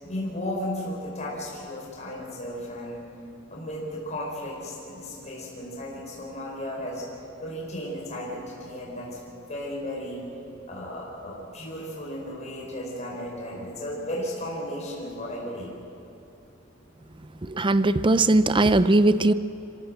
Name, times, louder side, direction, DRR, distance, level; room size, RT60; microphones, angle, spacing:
voice 1, 0.0-3.0 3.5-7.1 7.4-9.1 9.5-10.2 10.7-15.7, left 1 dB, 35° left, -4 dB, 5.2 m, -34 dB
voice 2, 17.5-19.3, right 2 dB, 25° right, 13 dB, 0.6 m, -19 dB
26.0 x 16.5 x 7.9 m, 2.9 s
head